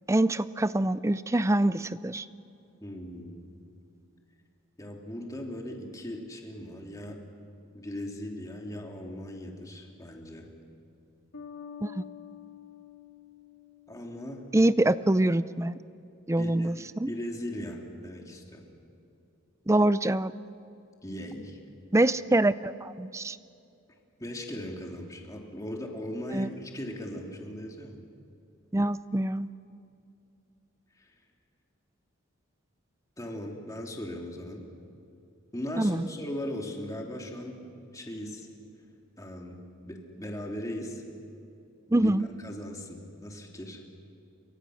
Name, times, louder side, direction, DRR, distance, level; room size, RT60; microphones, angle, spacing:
voice 1, 0.1-2.3 11.8-12.0 14.5-15.8 16.3-17.1 19.7-20.3 21.9-23.4 26.3-26.5 28.7-29.5 35.8-36.1 41.9-42.3, right 1 dB, 15° right, 15 dB, 0.5 m, -25 dB
voice 2, 2.8-3.5 4.8-7.2 7.7-10.5 13.9-14.4 16.3-18.6 21.0-21.6 24.2-28.0 31.0-31.1 33.2-34.6 35.5-37.7 37.9-38.5 39.2-39.6 39.8-41.0 42.0-43.8, left 1 dB, 15° left, 0 dB, 2.9 m, -38 dB
Bass guitar, 11.3-14.9, left 8 dB, 80° left, 3.6 m, -47 dB
29.5 x 24.5 x 6.4 m, 2.6 s
head